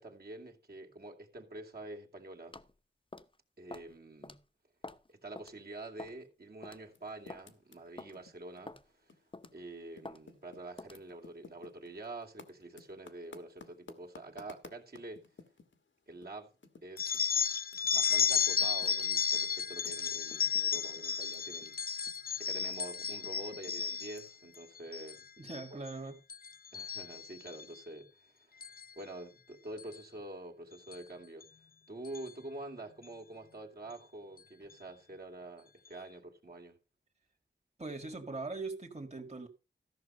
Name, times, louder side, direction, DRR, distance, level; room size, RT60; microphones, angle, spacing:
voice 1, 0.0-2.6 3.6-4.4 5.1-9.1 9.5-15.3 16.1-16.5 16.8-17.4 17.9-25.3 25.7-25.8 26.7-28.6 29.0-31.5 31.9-36.8, right 2 dB, 55° right, 2.4 m, -47 dB
sound 1, 2.5-2.7 3.1-3.3 3.7-3.9 4.2-4.4 4.8-5.1 5.4-5.5 6.0-6.2 6.6-6.8 7.3-7.5 8.0-8.1 8.7-8.9 9.3-9.6 10.1-10.2 10.8-11.0, left 2 dB, 25° left, 0.8 m, -47 dB
Typing, 6.8-9.6 9.9-15.8 16.2-16.3 16.6-21.8 22.0-24.6, left 4 dB, 80° left, 1.5 m, -56 dB
sound 2, 17.0-24.3 24.8-25.2 25.5-25.9 26.3-27.6 28.6-28.8 29.8-30.0 30.9-31.0 31.4-31.5 32.0-32.3, left 7 dB, 50° left, 0.4 m, -33 dB
voice 2, 25.4-26.2 37.8-39.5, right 3 dB, 35° right, 2.0 m, -41 dB
14.0 x 6.2 x 5.5 m
wide cardioid pair, 55°, 19 cm